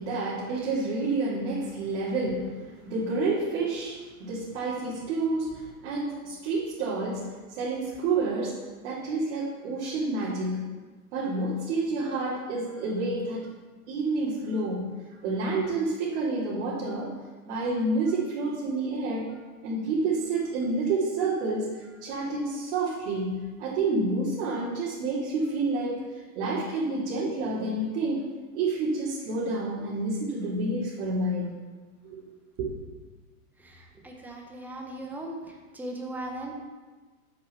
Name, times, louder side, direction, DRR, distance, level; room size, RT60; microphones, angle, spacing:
voice 1, 0.0-8.6 8.8-10.7 11.1-13.5 13.9-14.9 15.2-17.1 17.5-19.3 19.6-26.0 26.3-28.2 28.5-31.5 32.0-32.2 32.6-32.7, right 3 dB, 45° right, -7 dB, 2.6 m, -29 dB
voice 2, 33.6-36.5, right 1 dB, 5° right, 1 dB, 0.7 m, -38 dB
8.0 x 6.3 x 5.8 m, 1.3 s
hypercardioid pair, 145°, 46 cm